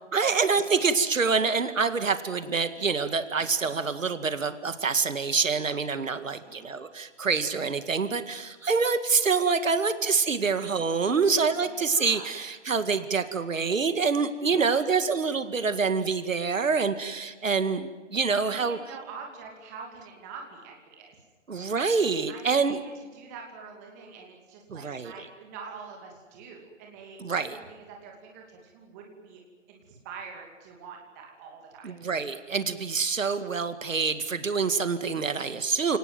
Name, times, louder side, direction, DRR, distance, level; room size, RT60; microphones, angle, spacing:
voice 1, 0.1-18.8 21.5-22.8 24.7-25.3 27.2-27.6 31.8-36.0, right 5 dB, 85° right, 11 dB, 2.2 m, -26 dB
voice 2, 6.1-6.7 11.7-12.3 14.4-14.9 18.2-21.2 22.3-29.4 29.7-31.9, right 5 dB, 15° right, 1 dB, 2.6 m, -45 dB
29.0 x 19.0 x 9.3 m, 1.4 s
hypercardioid pair, 175°, 38 cm